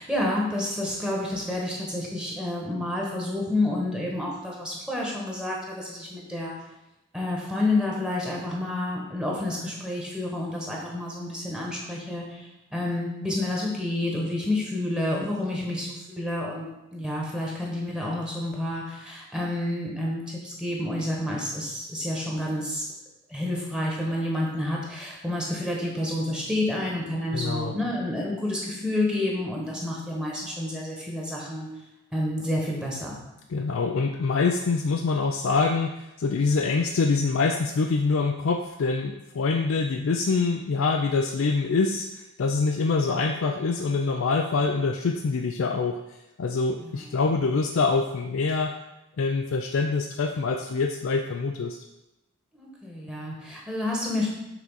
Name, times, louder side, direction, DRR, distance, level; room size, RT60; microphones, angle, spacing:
voice 1, 0.0-6.5 7.1-22.8 23.3-31.7 32.1-33.1 46.8-47.1 52.5-54.3, left 1 dB, 5° right, -3 dB, 1.3 m, -29 dB
voice 2, 27.3-27.7 33.5-46.0 46.4-48.8 49.2-51.8, left 4 dB, 70° left, 4 dB, 0.4 m, -25 dB
6.0 x 3.8 x 5.5 m, 0.93 s
head